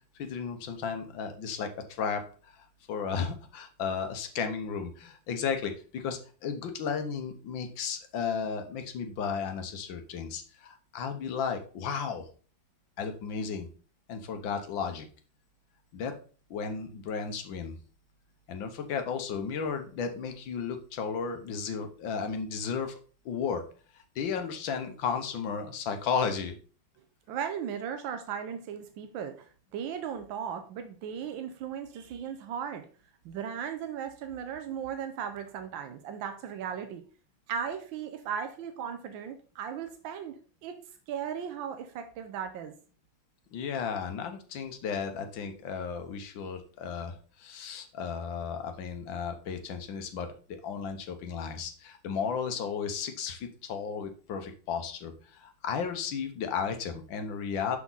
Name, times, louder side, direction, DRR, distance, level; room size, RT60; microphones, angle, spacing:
voice 1, 0.2-1.7 2.0-2.2 2.9-12.3 13.0-13.7 14.1-15.1 15.9-16.1 16.5-17.7 18.5-22.9 23.2-23.6 24.1-26.5 43.5-57.8, left 6 dB, 80° left, 7 dB, 1.7 m, -34 dB
voice 2, 27.3-32.9 33.2-37.0 37.5-40.8 41.1-42.7, right 8 dB, 85° right, 7 dB, 1.5 m, -37 dB
6.1 x 6.0 x 3.9 m, 0.39 s
omnidirectional pair, 2.1 m